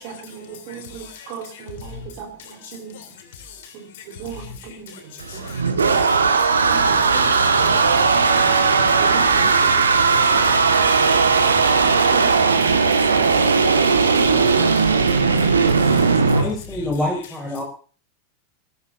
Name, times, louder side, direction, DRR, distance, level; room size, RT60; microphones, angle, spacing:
voice 1, 0.0-3.0 4.2-4.9 5.3-5.4 6.7-7.8 9.0-9.8 10.3-10.5 12.1-12.8, right 6 dB, 45° right, 4.2 m, -36 dB
voice 2, 0.7-2.0 2.4-3.1 3.5-3.6 3.9-4.0 4.3-4.6 4.9-5.6 6.4-6.5 6.8-8.0 8.3-9.0 9.2-9.9 10.3-10.6 10.8-11.1 11.6-12.9 13.3-14.4 14.8-16.1, left 6 dB, 55° left, 3.4 m, -39 dB
sound 1, 5.2-16.4, right 4 dB, 75° right, 1.7 m, -17 dB
voice 3, 16.3-17.6, left 1 dB, ahead, 5.4 m, -26 dB
21.0 x 14.0 x 2.7 m
figure-of-eight pair, 90°, 0 cm